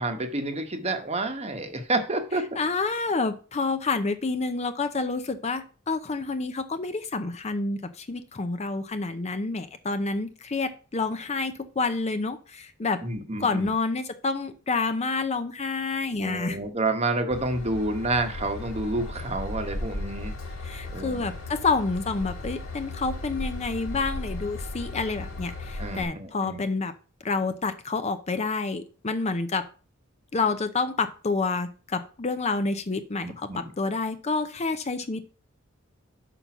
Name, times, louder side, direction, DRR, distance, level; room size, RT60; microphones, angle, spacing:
voice 1, 0.0-2.6 13.0-13.7 16.2-20.3 20.9-21.2 25.8-26.6 33.2-33.7, right 2 dB, 30° right, 6 dB, 1.0 m, -29 dB
voice 2, 2.6-13.0 13.4-16.6 20.6-26.9 27.2-29.7 30.3-35.3, left 3 dB, 30° left, 10 dB, 0.6 m, -28 dB
Train / Engine, 17.3-26.0, left 2 dB, 85° left, 1.5 m, -36 dB
5.9 x 5.4 x 5.9 m, 0.37 s
head